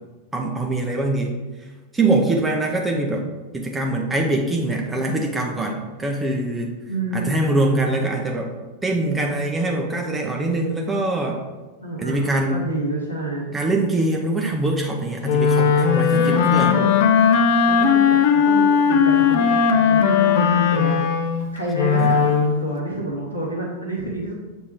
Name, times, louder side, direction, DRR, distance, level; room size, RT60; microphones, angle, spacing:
voice 1, 0.3-1.3 1.9-6.7 7.1-8.5 8.8-11.4 12.0-12.6 13.5-16.8 22.0-22.1, right 2 dB, 10° right, 0 dB, 0.8 m, -23 dB
voice 2, 6.9-7.9 11.8-13.5 16.1-16.9 17.7-21.0 21.5-24.3, right 1 dB, 80° left, -4 dB, 1.2 m, -28 dB
Wind instrument woodwind instrument, 15.2-22.6, left 6 dB, 50° left, 0.6 m, -17 dB
7.4 x 3.6 x 4.4 m, 1.2 s
figure-of-eight pair, 90°, 0 cm